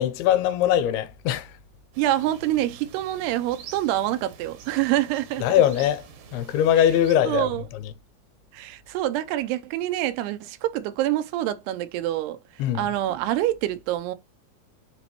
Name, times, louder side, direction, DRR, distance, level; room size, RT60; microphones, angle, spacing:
voice 1, 0.0-1.5 5.4-6.0 6.3-7.5 12.6-12.9, left 10 dB, 85° left, 2.6 m, -21 dB
sound 1, 1.9-7.2, right 7 dB, 70° right, 1.9 m, -46 dB
voice 2, 2.0-5.5 7.3-7.6 8.5-12.4 12.7-14.2, right 13 dB, 85° right, 2.7 m, -26 dB
8.1 x 4.1 x 2.9 m
omnidirectional pair, 4.6 m